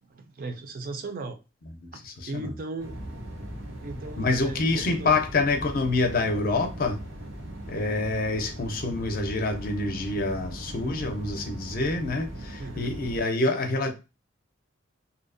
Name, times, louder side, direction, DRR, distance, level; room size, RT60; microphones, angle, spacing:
voice 1, 0.0-1.4 1.9-3.0 3.8-5.1 12.6-12.9, right 3 dB, 45° right, 0.4 m, -37 dB
voice 2, 1.8-2.5 4.2-7.0 7.7-13.9, left 3 dB, 45° left, 0.5 m, -27 dB
sound 1, 2.8-13.2, right 1 dB, 90° right, 1.0 m, -39 dB
2.6 x 2.0 x 2.5 m
head